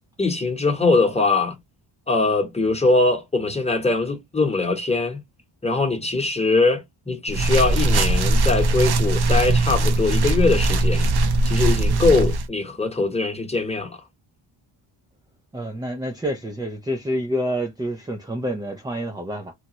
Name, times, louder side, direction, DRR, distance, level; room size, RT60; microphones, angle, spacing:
voice 1, 0.2-1.6 2.1-5.2 5.6-11.1 11.4-14.0, left 3 dB, 15° left, 1.0 m, -22 dB
sound 1, 7.3-12.5, right 2 dB, 50° right, 0.7 m, -20 dB
voice 2, 15.5-19.5, equal, 10° right, 0.4 m, -28 dB
3.0 x 2.3 x 2.9 m
cardioid pair, 75°, 49 cm